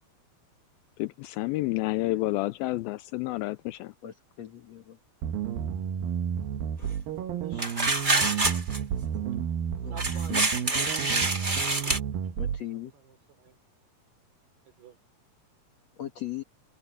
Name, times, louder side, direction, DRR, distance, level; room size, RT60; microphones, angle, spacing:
voice 1, 1.0-3.9, left 18 dB, 80° left, 2.3 m, -29 dB
voice 2, 4.0-5.0 6.8-7.0 7.5-7.7 9.8-9.9 10.3-10.4 12.4-12.9 16.0-16.4, left 13 dB, 55° left, 2.0 m, -39 dB
sound 1, 5.2-12.6, right 8 dB, 70° right, 3.0 m, -31 dB
sound 2, 7.6-8.8 10.0-12.0, right 2 dB, 20° right, 1.4 m, -26 dB
voice 3, 9.8-11.2 12.1-12.4 12.7-13.6 14.7-15.0, right 5 dB, 85° right, 7.3 m, -49 dB
omnidirectional pair, 4.5 m